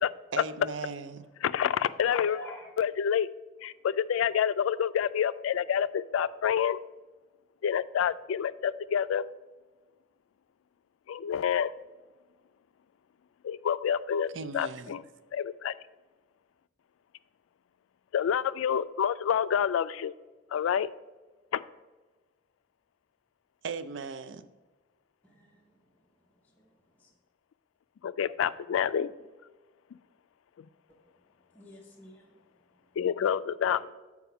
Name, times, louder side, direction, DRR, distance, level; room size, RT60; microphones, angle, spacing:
voice 1, 0.3-1.2 14.3-14.9 23.6-24.4, right 5 dB, 65° right, 11 dB, 0.4 m, -37 dB
voice 2, 1.4-2.4 2.8-3.3 3.6-6.8 7.6-9.2 11.1-11.7 13.4-14.3 14.5-15.0 15.3-15.7 18.1-20.1 20.5-20.9 21.5-21.6 28.0-29.1 30.6-30.7 33.0-33.8, left 8 dB, 90° left, 16 dB, 0.3 m, -28 dB
voice 3, 2.3-2.7 25.2-25.6 26.6-26.7 27.0-27.1 31.5-32.3, left 1 dB, 10° left, -4 dB, 0.8 m, -47 dB
6.9 x 4.8 x 5.7 m, 1.2 s
head